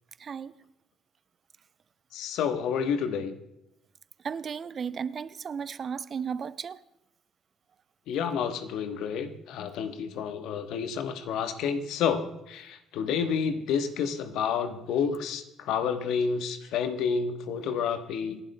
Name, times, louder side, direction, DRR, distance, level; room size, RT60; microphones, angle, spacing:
voice 1, 0.2-0.5 4.2-6.8, right 6 dB, 45° right, 0.5 m, -34 dB
voice 2, 2.1-3.3 8.1-18.4, left 6 dB, 65° left, 1.1 m, -29 dB
27.5 x 11.5 x 2.3 m
hypercardioid pair, 50°, 0 cm